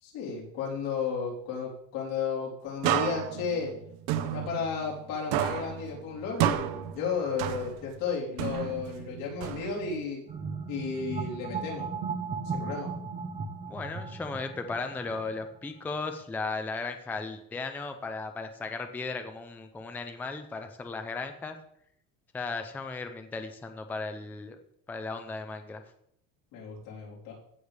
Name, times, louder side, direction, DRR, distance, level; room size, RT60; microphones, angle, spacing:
voice 1, 0.0-3.7 4.2-10.2 10.7-11.9 12.5-12.9 26.5-27.3, left 5 dB, 75° left, -3 dB, 4.0 m, -33 dB
sound 1, 2.8-5.1 5.3-8.0 8.4-10.0, right 11 dB, 85° right, 0.9 m, -31 dB
sound 2, 10.3-15.6, right 5 dB, 25° right, 1.2 m, -36 dB
voice 2, 13.7-21.6 22.3-24.6 24.9-25.8, left 3 dB, 5° left, 7 dB, 0.5 m, -36 dB
16.0 x 6.9 x 3.4 m, 0.71 s
cardioid pair, 170°, 34 cm